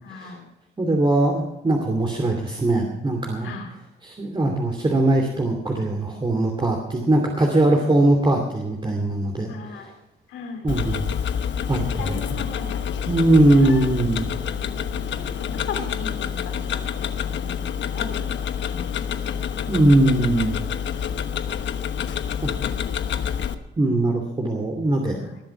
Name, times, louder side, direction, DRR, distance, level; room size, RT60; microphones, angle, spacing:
voice 1, 0.0-0.4 3.4-3.7 9.5-9.9 10.3-10.7 12.0-13.6 15.4-19.2 25.2-25.4, left 5 dB, 85° left, 5 dB, 2.9 m, -37 dB
voice 2, 0.8-3.5 4.0-9.5 10.6-11.1 11.7-12.4 13.1-14.3 19.7-20.5 22.4-22.5 23.8-25.2, right 2 dB, 25° right, 1 dB, 2.7 m, -21 dB
Tick-tock, 10.7-23.5, left 8 dB, 65° left, 1.1 m, -28 dB
20.0 x 7.8 x 6.0 m, 0.94 s
cardioid pair, 90°, 20 cm